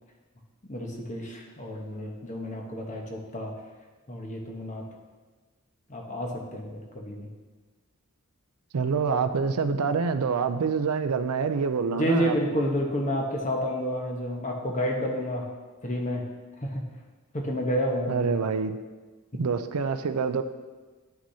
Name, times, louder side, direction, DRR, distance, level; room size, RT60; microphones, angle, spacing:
voice 1, 0.7-3.5 4.1-4.8 5.9-7.3 11.9-15.5 15.8-16.2 16.6-16.8 17.3-18.3, equal, 35° left, 1 dB, 1.1 m, -30 dB
voice 2, 8.7-12.4 18.1-18.8 19.4-20.4, right 5 dB, 80° right, 9 dB, 0.5 m, -26 dB
11.5 x 6.1 x 2.8 m, 1.3 s
head